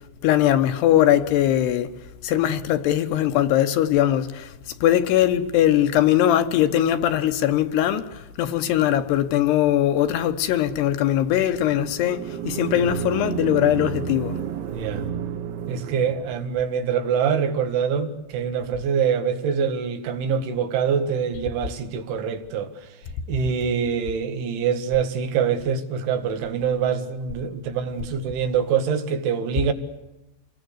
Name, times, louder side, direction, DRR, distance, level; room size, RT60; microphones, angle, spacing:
voice 1, 0.0-1.9 2.2-14.4, left 11 dB, 70° left, 2.9 m, -21 dB
sound 1, 11.5-16.5, right 8 dB, 70° right, 3.1 m, -31 dB
voice 2, 14.7-15.1 15.7-22.7 23.3-29.7, right 7 dB, 90° right, 4.3 m, -24 dB
27.5 x 21.0 x 8.1 m
omnidirectional pair, 5.3 m